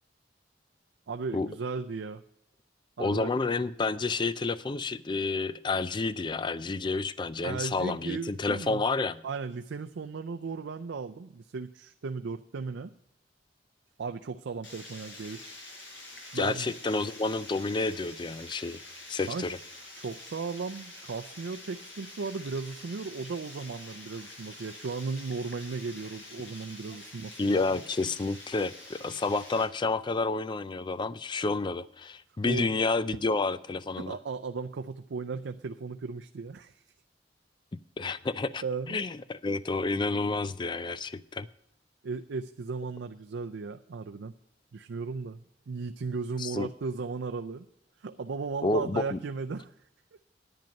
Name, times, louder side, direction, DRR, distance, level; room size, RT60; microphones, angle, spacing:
voice 1, 1.1-2.2 3.0-3.5 7.4-8.8 9.2-12.9 14.0-15.5 16.3-16.7 19.3-19.5 20.0-27.6 32.4-32.7 34.0-36.8 38.6-39.0 42.0-44.3 44.7-47.7 48.0-49.7, right 4 dB, 80° right, 6 dB, 0.5 m, -36 dB
voice 2, 3.0-9.2 16.3-18.8 19.1-19.6 27.4-34.2 38.0-41.5 46.4-46.7 48.6-49.2, left 3 dB, 25° left, 16 dB, 0.4 m, -30 dB
Water, 14.6-29.6, left 2 dB, 85° left, 4.7 m, -47 dB
10.5 x 9.1 x 5.2 m, 0.78 s
head